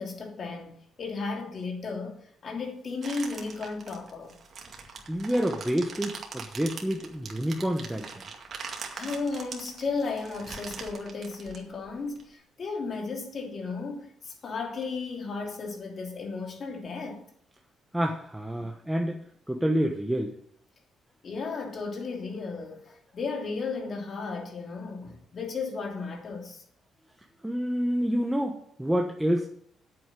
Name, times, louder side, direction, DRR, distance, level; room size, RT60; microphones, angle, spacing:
voice 1, 0.0-4.4 8.9-17.3 18.6-18.7 21.2-26.6, left 4 dB, 50° left, 2.9 m, -34 dB
sound 1, 3.0-12.2, right 5 dB, 55° right, 2.1 m, -42 dB
voice 2, 5.1-8.1 17.9-19.2 19.5-20.3 27.4-29.5, equal, 5° right, 1.2 m, -28 dB
8.7 x 7.9 x 6.9 m
cardioid pair, 90°, 0 cm